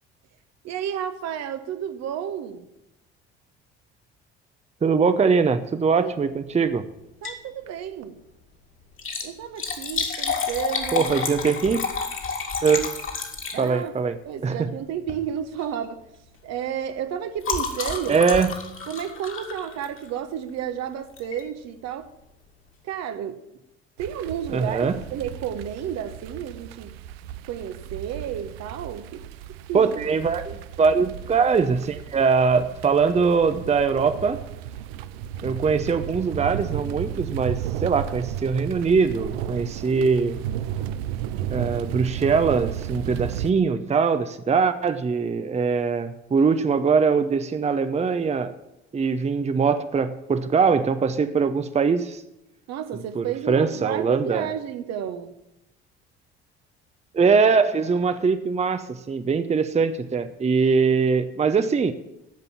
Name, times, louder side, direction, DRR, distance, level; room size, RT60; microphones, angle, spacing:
voice 1, 0.6-2.7 6.0-6.1 7.2-8.2 9.2-11.1 13.5-14.0 14.3-16.0 16.4-18.2 18.9-22.1 22.8-23.4 24.0-26.9 27.5-29.2 29.7-30.0 52.7-55.3, right 9 dB, 55° right, 9 dB, 1.0 m, -31 dB
voice 2, 4.8-6.9 10.9-11.8 12.6-12.9 13.6-14.2 14.4-14.7 18.1-18.6 24.5-25.0 29.7-34.4 35.4-40.4 41.5-48.5 48.9-52.2 53.1-54.5 57.1-61.9, right 5 dB, 20° right, 10 dB, 0.7 m, -22 dB
Liquid, 7.1-7.5 7.8-7.9 8.9-14.0 15.0-15.3 15.6-15.8 16.1-20.2 21.2-21.4 22.0-22.1 22.2-22.3, left 5 dB, 40° left, 2.3 m, -30 dB
sound 1, 24.0-43.5, right 10 dB, 75° right, 0.5 m, -34 dB
15.0 x 5.3 x 7.2 m, 0.89 s
figure-of-eight pair, 55°, 31 cm